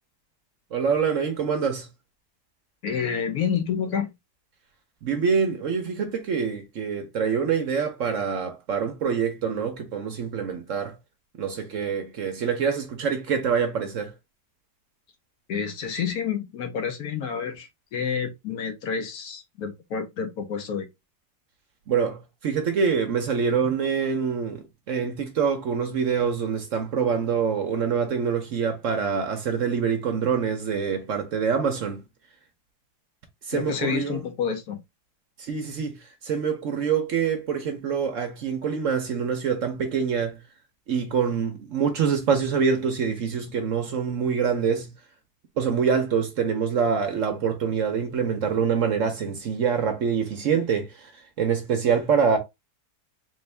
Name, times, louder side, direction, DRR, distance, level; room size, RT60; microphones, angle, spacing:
voice 1, 0.7-1.9 5.0-10.9 11.4-14.1 21.9-32.0 33.5-34.2 35.4-36.0 36.2-40.4 40.9-44.9 45.6-50.9 51.4-52.4, right 6 dB, 60° right, 1.0 m, -25 dB
voice 2, 2.8-4.1 15.5-20.9 33.5-34.8, left 7 dB, 70° left, 1.2 m, -29 dB
3.8 x 2.5 x 3.2 m
omnidirectional pair, 1.7 m